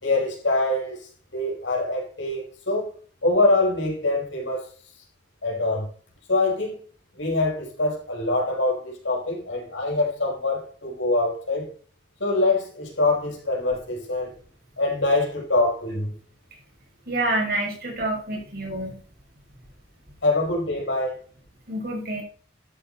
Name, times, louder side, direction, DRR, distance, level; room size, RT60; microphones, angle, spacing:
voice 1, 0.0-1.0 1.3-2.9 3.2-4.6 5.4-5.9 6.3-6.8 7.2-11.6 12.2-14.3 14.8-16.1 20.2-21.1, left 2 dB, 80° left, 4.9 m, -24 dB
voice 2, 17.1-18.9 21.7-22.2, right 2 dB, 50° right, 5.2 m, -27 dB
12.5 x 8.8 x 4.1 m
head